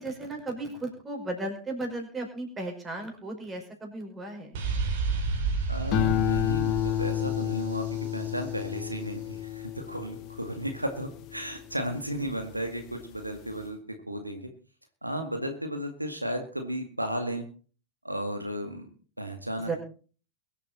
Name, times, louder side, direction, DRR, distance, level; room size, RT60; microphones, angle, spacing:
voice 1, 0.0-4.6 19.6-19.8, right 2 dB, 15° right, 2 dB, 5.3 m, -35 dB
sound 1, 4.5-8.3, right 4 dB, 55° right, 3.7 m, -31 dB
voice 2, 5.7-13.8 14.1-14.5 15.0-17.4 18.0-18.9 19.2-19.7, equal, 85° right, 5 dB, 2.0 m, -34 dB
sound 2, 5.9-12.4 12.9-13.4, left 12 dB, 40° left, 1.8 m, -30 dB
23.0 x 8.4 x 4.4 m, 0.39 s
figure-of-eight pair, 90°, 0 cm